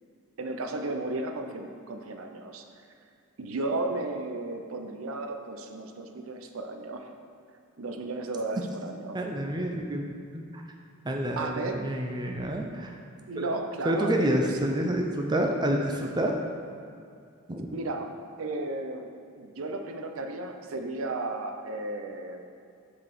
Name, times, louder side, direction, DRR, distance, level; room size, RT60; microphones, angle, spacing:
voice 1, 0.4-2.6 3.4-7.1 7.8-9.2 11.4-11.9 13.3-14.7 17.7-19.1 19.4-22.4, right 2 dB, 65° right, 5 dB, 0.6 m, -34 dB
voice 2, 9.1-10.6 11.0-13.0 13.4-13.5 13.8-16.3 17.5-17.7, right 1 dB, 20° right, 1 dB, 0.5 m, -28 dB
7.5 x 4.0 x 6.6 m, 2.5 s
head